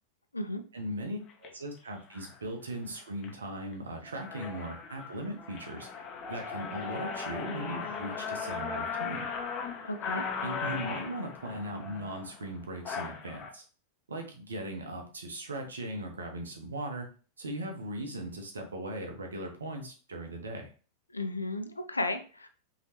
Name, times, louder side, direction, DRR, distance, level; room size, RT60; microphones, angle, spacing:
voice 1, 0.7-5.9 6.3-9.2 10.4-13.6 14.1-17.1 17.4-20.7, right 1 dB, 70° right, 3 dB, 1.1 m, -38 dB
sound 1, 1.3-1.5 2.1-2.4 2.9-3.3 3.7-3.8 4.1-13.5, left 5 dB, 30° left, 1.0 m, -38 dB
voice 2, 9.8-10.3 21.1-22.5, left 2 dB, 80° left, 7 dB, 0.5 m, -34 dB
5.4 x 3.2 x 3.1 m, 0.38 s
figure-of-eight pair, 90°, 0 cm